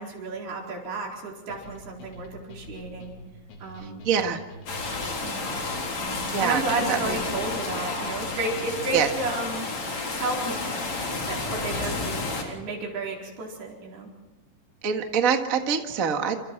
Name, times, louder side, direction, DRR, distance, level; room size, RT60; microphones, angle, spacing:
voice 1, 0.0-3.2 3.6-4.0 5.2-5.5 6.0-9.7 10.2-10.8 11.3-14.1, right 2 dB, 80° right, -1 dB, 6.3 m, -32 dB
sound 1, 1.5-9.4, equal, 80° left, 5.5 m, -45 dB
voice 2, 3.8-4.4 6.3-6.6 6.9-7.2 8.9-9.1 11.7-11.9 14.8-16.3, right 7 dB, 40° right, 4 dB, 1.1 m, -25 dB
sound 2, 4.7-12.4, left 3 dB, 45° left, 4.7 m, -31 dB
28.5 x 27.5 x 4.6 m, 1.1 s
omnidirectional pair, 4.5 m